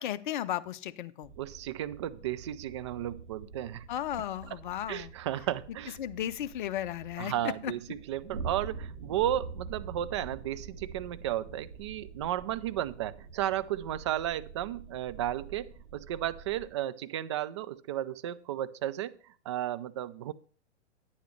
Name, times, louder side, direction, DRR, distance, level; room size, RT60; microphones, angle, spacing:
voice 1, 0.0-1.3 3.9-5.1 6.0-7.7, left 11 dB, 45° left, 14 dB, 0.6 m, -35 dB
sound 1, 1.2-16.7, right 5 dB, 75° right, 1.9 m, -46 dB
voice 2, 1.4-3.9 4.9-6.0 7.2-20.3, right 12 dB, 25° right, 13 dB, 0.3 m, -34 dB
10.0 x 9.5 x 3.2 m, 0.42 s
figure-of-eight pair, 110°, 35 cm